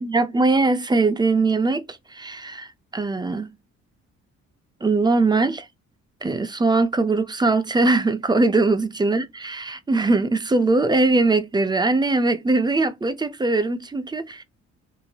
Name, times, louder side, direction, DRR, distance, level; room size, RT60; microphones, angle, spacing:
voice 1, 0.0-3.5 4.8-5.7 6.2-14.4, right 3 dB, 15° right, 0.4 m, -21 dB
2.8 x 2.6 x 2.2 m
cardioid pair, 90°, 30 cm